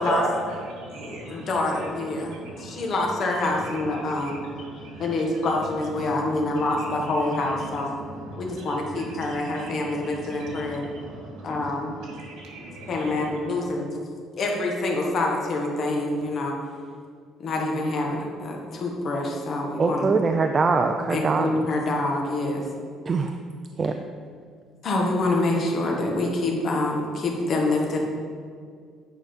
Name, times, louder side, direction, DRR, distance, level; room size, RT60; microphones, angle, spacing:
voice 1, 0.0-2.9 3.4-13.6, right 2 dB, 80° right, 2.3 m, -37 dB
voice 2, 1.3-4.4 4.7-7.9 8.4-10.8 11.4-11.9 12.9-13.8 14.4-16.6 17.4-20.1 21.1-22.7 24.8-28.0, left 2 dB, 40° left, 1.4 m, -26 dB
voice 3, 19.8-21.5 23.1-23.3 23.8-24.0, right 4 dB, 25° right, 0.4 m, -22 dB
9.2 x 4.9 x 5.3 m
cardioid pair, 150°, 0 cm